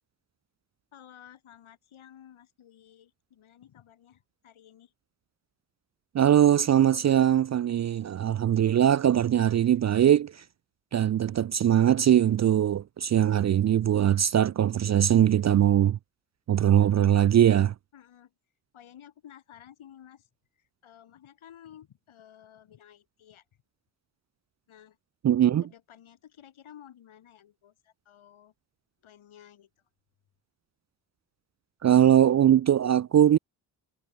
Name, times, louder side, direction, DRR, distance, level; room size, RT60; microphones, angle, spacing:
voice 1, 0.9-4.9 16.8-17.0 17.9-18.3 18.7-20.3 20.5-23.4 24.7-25.0 25.6-28.5 29.0-29.7, left 10 dB, 70° left, 4.0 m, -53 dB
voice 2, 6.1-10.3 10.9-16.0 16.5-17.7 25.2-25.6 31.8-33.4, right 10 dB, 35° right, 0.4 m, -21 dB
supercardioid pair, 50°, 50 cm